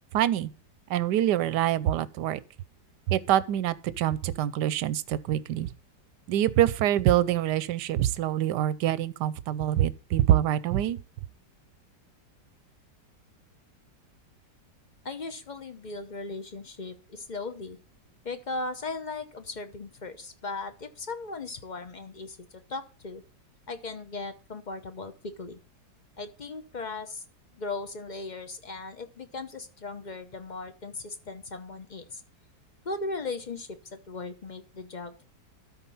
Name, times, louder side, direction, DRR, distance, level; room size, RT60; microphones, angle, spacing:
voice 1, 0.1-0.5 0.9-2.4 3.1-5.7 6.3-11.0, right 12 dB, 75° right, 1.2 m, -25 dB
voice 2, 15.0-17.8 18.2-23.2 23.7-25.6 26.2-27.2 27.5-32.2 32.8-35.2, left 3 dB, 35° left, 0.8 m, -37 dB
13.0 x 4.4 x 5.5 m
omnidirectional pair, 1.9 m